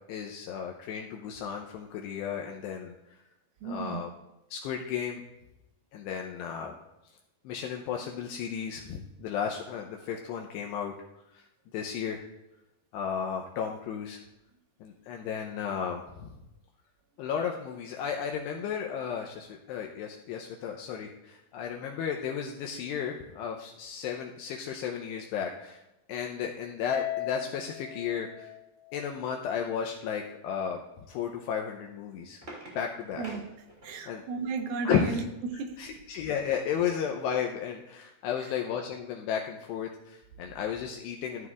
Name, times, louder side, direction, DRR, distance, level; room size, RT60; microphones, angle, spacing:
voice 1, 0.1-2.9 3.6-4.1 4.5-5.2 5.9-6.7 7.4-10.9 11.3-11.5 11.7-12.2 12.9-14.2 14.8-16.4 17.2-25.8 26.1-28.5 28.9-32.4 32.8-33.2 34.1-34.2 34.8-35.2 35.8-41.5, left 8 dB, 85° left, 2 dB, 2.4 m, -34 dB
voice 2, 3.6-4.1 33.2-33.4 33.8-35.8 38.4-38.5, right 4 dB, 75° right, 4 dB, 2.2 m, -34 dB
Harp, 26.9-29.4, left 13 dB, 70° left, 2.1 m, -38 dB
sound 1, 31.8-34.2 35.8-36.7 37.2-37.3 37.5-37.8, right 1 dB, 40° right, 0.9 m, -48 dB
14.0 x 11.0 x 2.4 m, 0.94 s
omnidirectional pair, 5.6 m